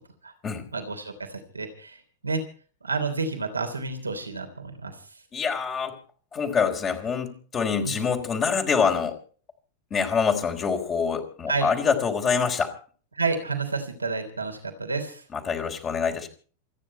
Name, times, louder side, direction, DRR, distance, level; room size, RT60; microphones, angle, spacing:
voice 1, 0.7-2.0 2.2-2.4 2.8-4.9 7.8-8.0 11.5-11.7 13.1-15.2, right 4 dB, 80° right, 5 dB, 3.1 m, -30 dB
voice 2, 5.3-5.9 6.3-9.2 9.9-12.7 15.3-16.3, left 6 dB, 25° left, 2 dB, 3.8 m, -25 dB
28.0 x 10.0 x 4.5 m, 0.43 s
figure-of-eight pair, 90°, 0 cm